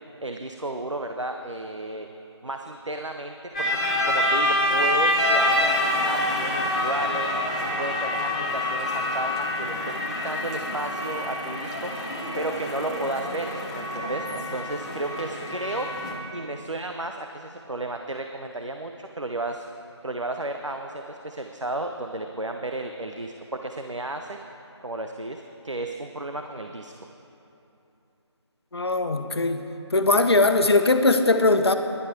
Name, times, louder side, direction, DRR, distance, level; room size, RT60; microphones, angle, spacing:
voice 1, 0.2-2.1 2.4-3.7 4.0-7.3 7.8-11.9 12.4-15.9 16.3-19.7 20.0-24.4 24.8-26.9, right 2 dB, 90° right, 5 dB, 0.9 m, -33 dB
sound 1, 3.5-16.1, left 1 dB, 10° left, 0.9 m, -26 dB
voice 2, 28.7-29.6 29.9-31.7, left 2 dB, 60° left, 7 dB, 1.0 m, -20 dB
18.0 x 11.0 x 4.7 m, 2.9 s
figure-of-eight pair, 160°, 15 cm